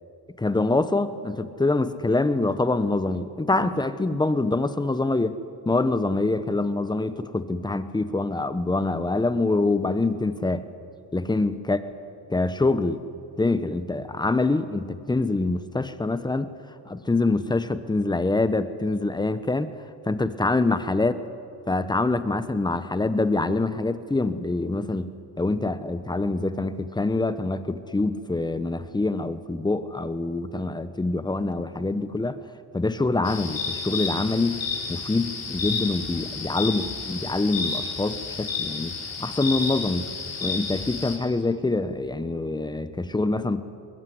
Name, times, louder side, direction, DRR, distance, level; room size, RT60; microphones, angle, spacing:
voice 1, 0.4-5.3 5.7-10.6 11.1-11.8 12.3-13.0 13.4-16.5 16.9-19.7 20.1-21.2 21.7-32.4 32.7-34.6 34.9-38.9 39.2-40.1 40.4-43.6, left 2 dB, 10° left, 12 dB, 1.1 m, -25 dB
sound 1, 33.2-41.2, left 4 dB, 40° left, 5.5 m, -31 dB
21.5 x 20.5 x 9.7 m, 2.6 s
cardioid pair, 110°, 39 cm